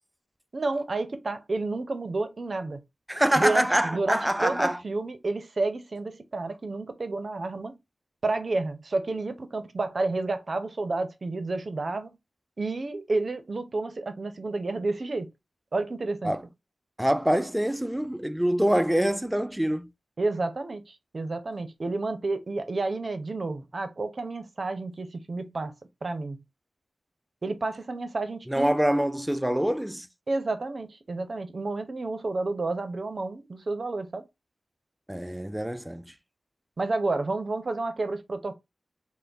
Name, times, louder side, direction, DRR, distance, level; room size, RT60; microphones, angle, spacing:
voice 1, 0.5-2.8 3.4-7.7 8.2-12.2 12.6-15.3 15.7-16.3 20.2-25.7 26.0-26.4 27.4-28.8 30.3-34.2 36.8-38.5, right 3 dB, 55° right, 0.6 m, -30 dB
voice 2, 3.1-4.8 16.2-16.4 17.0-19.9 28.5-30.1 35.1-36.0, equal, 10° right, 0.4 m, -25 dB
3.4 x 2.1 x 3.9 m
cardioid pair, 60°, 0 cm